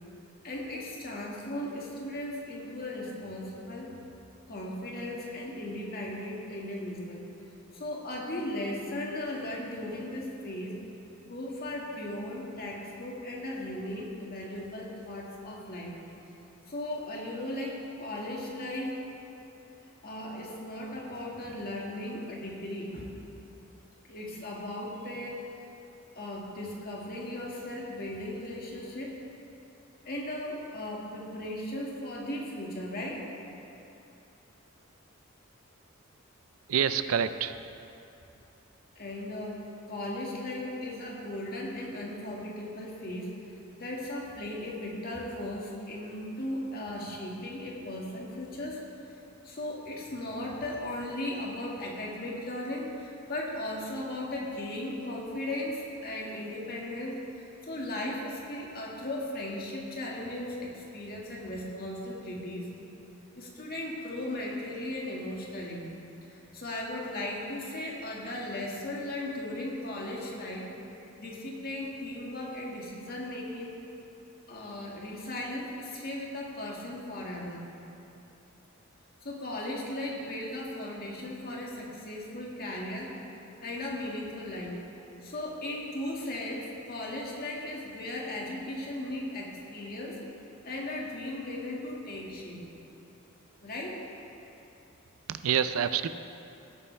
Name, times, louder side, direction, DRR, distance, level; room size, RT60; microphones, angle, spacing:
voice 1, 0.4-4.0 4.5-7.3 7.7-10.8 11.3-16.0 16.7-19.0 20.0-23.1 24.0-25.5 26.2-29.2 30.0-33.3 39.0-43.4 43.8-49.2 49.4-62.7 63.3-65.9 66.3-70.7 71.2-73.7 74.5-77.7 79.2-83.2 83.6-84.8 85.2-90.2 90.6-92.6 93.6-94.0, left 1 dB, 45° left, -3 dB, 2.0 m, -37 dB
voice 2, 36.7-37.6 95.3-96.1, right 8 dB, 90° right, 11 dB, 0.5 m, -27 dB
17.0 x 9.8 x 3.4 m, 2.9 s
head